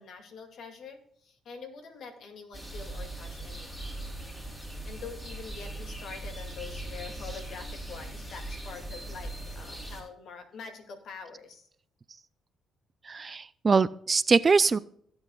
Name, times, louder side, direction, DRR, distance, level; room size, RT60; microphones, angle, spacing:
voice 1, 0.0-3.9 4.8-11.7, left 5 dB, 70° left, 5 dB, 2.3 m, -45 dB
sound 1, 2.5-10.0, right 1 dB, 10° left, 3.5 m, -40 dB
voice 2, 13.1-14.8, right 4 dB, 35° right, 17 dB, 0.4 m, -23 dB
16.0 x 8.1 x 2.4 m, 0.64 s
cardioid pair, 90°, 0 cm